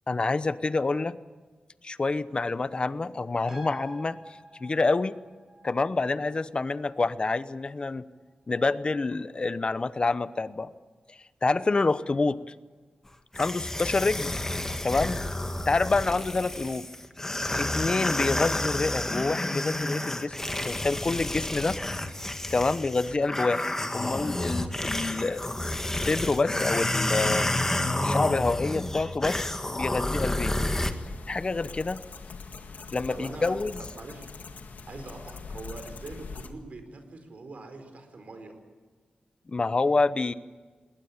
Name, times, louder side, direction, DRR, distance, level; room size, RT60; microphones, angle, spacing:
voice 1, 0.1-1.1 1.8-4.2 4.6-5.1 5.6-8.0 8.5-10.7 11.1-12.5 13.4-14.4 14.8-15.2 15.7-16.9 17.6-20.3 20.6-21.8 22.5-23.6 23.9-27.5 28.0-29.4 29.7-30.6 31.3-32.0 32.9-33.7 39.5-40.3, left 3 dB, 35° left, 15 dB, 0.8 m, -27 dB
sound 1, 3.5-10.4 10.8-10.9, equal, 20° right, 5.5 m, -49 dB
sound 2, 13.3-30.9, left 1 dB, 15° left, 1.6 m, -30 dB
sound 3, 30.2-36.5, left 4 dB, 80° left, 1.8 m, -43 dB
voice 2, 33.1-33.5 33.9-34.3 34.8-38.6, right 3 dB, 55° right, 6 dB, 4.4 m, -43 dB
21.0 x 18.5 x 8.8 m, 1.4 s
wide cardioid pair, 100°, 3 cm